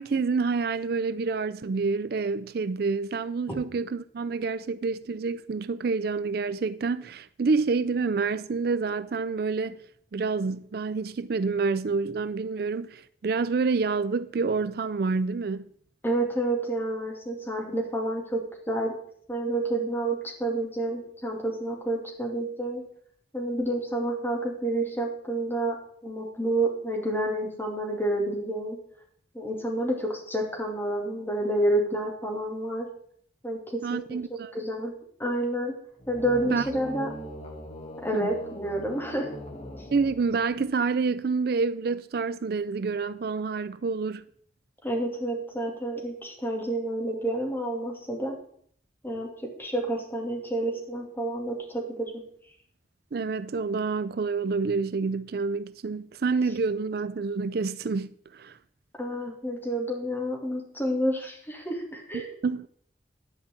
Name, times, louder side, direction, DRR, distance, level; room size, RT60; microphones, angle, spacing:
voice 1, 0.0-9.8 10.1-15.7 33.8-34.6 36.4-36.7 38.1-38.3 39.9-44.2 53.1-58.6 62.4-62.7, right 4 dB, 60° right, 0.4 m, -28 dB
voice 2, 16.0-18.4 18.7-18.9 19.3-22.8 23.3-25.8 26.0-28.8 29.3-32.9 33.4-34.2 34.5-34.9 35.2-35.7 36.1-37.1 38.0-39.3 44.8-48.4 49.0-49.3 49.6-52.1 59.0-62.3, right 1 dB, 10° left, 2.6 m, -29 dB
sound 1, 36.0-40.7, equal, 35° left, 1.7 m, -41 dB
11.5 x 5.2 x 8.5 m
head